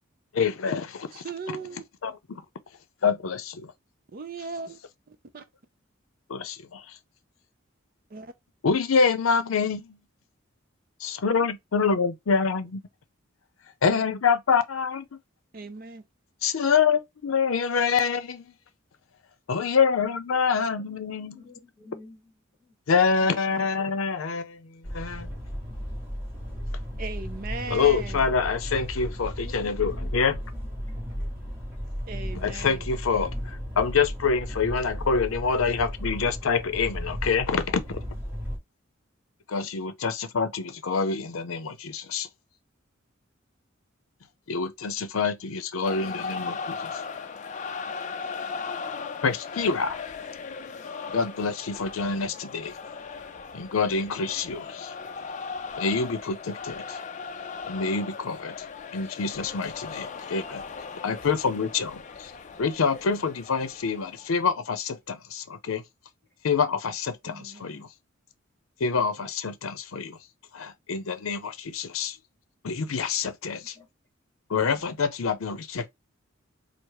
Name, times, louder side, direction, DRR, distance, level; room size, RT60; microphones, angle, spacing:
voice 1, 0.3-1.2 2.0-2.4 3.0-3.7 6.3-6.8 8.6-10.0 11.0-12.8 13.8-15.1 16.4-18.5 19.5-21.4 22.9-25.3 27.7-30.4 32.4-38.0 39.5-42.3 44.5-47.0 49.2-50.0 51.1-52.7 53.5-54.9 55.8-57.0 57.7-58.5 58.9-60.6 61.0-62.3 62.6-65.8 66.4-67.9 68.8-70.2 70.5-72.2 72.6-73.7 74.5-75.9, left 5 dB, 90° left, 0.6 m, -26 dB
voice 2, 1.1-1.8 4.1-4.8 5.1-5.4 8.1-8.3 15.5-16.1 23.5-23.6 27.0-28.3 32.1-32.9 46.0-46.6 67.2-67.9, right 4 dB, 45° right, 0.5 m, -38 dB
voice 3, 20.6-22.8 25.1-25.3 29.4-31.1 72.1-72.2 73.5-73.9, left 3 dB, 15° left, 1.8 m, -52 dB
sound 1, 24.8-38.6, equal, 10° right, 1.8 m, -35 dB
sound 2, 45.8-64.4, left 5 dB, 35° left, 0.4 m, -38 dB
4.7 x 2.0 x 3.1 m
head